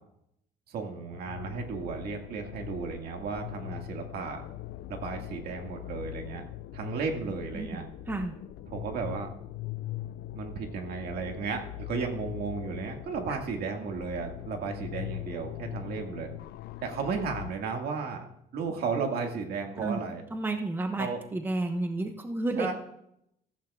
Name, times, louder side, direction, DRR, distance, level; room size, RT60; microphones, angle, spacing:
voice 1, 0.7-4.4 4.9-6.4 6.7-7.9 8.7-9.3 10.3-16.3 16.8-18.3 18.5-20.2 21.0-21.2 22.5-22.7, right 5 dB, 65° right, 3 dB, 1.9 m, -34 dB
sound 1, 1.1-17.5, left 15 dB, 70° left, 0.5 m, -41 dB
voice 2, 20.3-22.7, right 2 dB, 10° right, 5 dB, 1.0 m, -31 dB
15.0 x 14.5 x 2.4 m, 0.76 s
cardioid pair, 110°, 17 cm